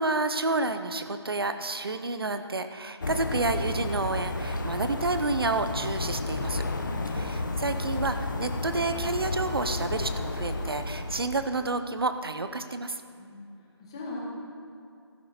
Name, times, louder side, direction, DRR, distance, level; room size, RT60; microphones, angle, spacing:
voice 1, 0.0-6.6 7.1-13.0, right 3 dB, 55° right, 9 dB, 0.7 m, -30 dB
sound 1, 3.0-11.5, left 2 dB, 45° left, 1.0 m, -32 dB
voice 2, 6.8-7.3 13.2-13.5 13.8-14.2, left 2 dB, 10° left, -4 dB, 1.2 m, -40 dB
15.0 x 13.0 x 4.2 m, 2.4 s
figure-of-eight pair, 175°, 15 cm